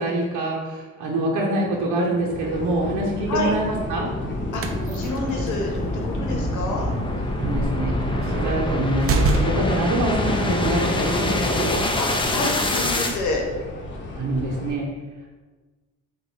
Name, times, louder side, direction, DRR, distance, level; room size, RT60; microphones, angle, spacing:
voice 1, 0.0-4.1 7.4-11.7 14.2-14.9, right 1 dB, 75° right, -2 dB, 0.9 m, -25 dB
sound 1, 1.6-13.2, left 1 dB, 15° left, 0.6 m, -26 dB
Esperance Wind Farm II, 2.3-14.7, left 2 dB, 40° left, 1.0 m, -35 dB
sound 2, 4.3-9.9, right 3 dB, 50° right, 0.6 m, -28 dB
voice 2, 4.5-6.9 12.0-13.4, left 3 dB, 75° left, 1 dB, 1.0 m, -28 dB
4.0 x 2.5 x 4.8 m, 1.3 s
cardioid pair, 90°, 30 cm